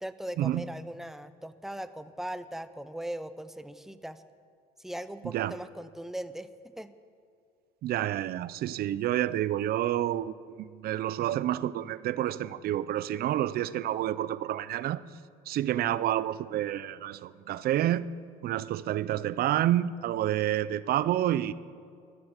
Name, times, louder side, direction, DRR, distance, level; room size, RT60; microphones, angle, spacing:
voice 1, 0.0-4.2 4.8-6.5 6.8-6.9, right 1 dB, ahead, 12 dB, 0.7 m, -39 dB
voice 2, 7.8-15.0 15.5-18.1 18.4-21.5, right 12 dB, 65° right, 17 dB, 0.6 m, -29 dB
13.0 x 11.5 x 8.1 m, 2.4 s
cardioid pair, 110°, 17 cm